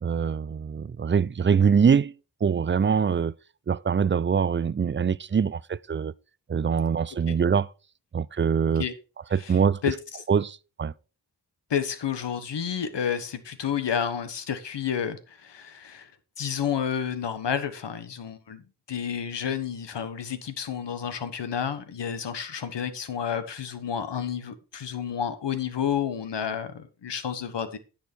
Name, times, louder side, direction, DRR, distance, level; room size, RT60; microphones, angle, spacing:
voice 1, 0.0-2.1 2.4-3.3 3.7-6.1 6.5-7.7 8.1-8.9 9.3-9.8 10.3-10.9, right 6 dB, 30° right, 0.4 m, -23 dB
voice 2, 11.7-16.1 16.4-18.6 18.9-27.8, left 8 dB, 80° left, 1.3 m, -30 dB
10.0 x 6.4 x 4.5 m
cardioid pair, 45°, 41 cm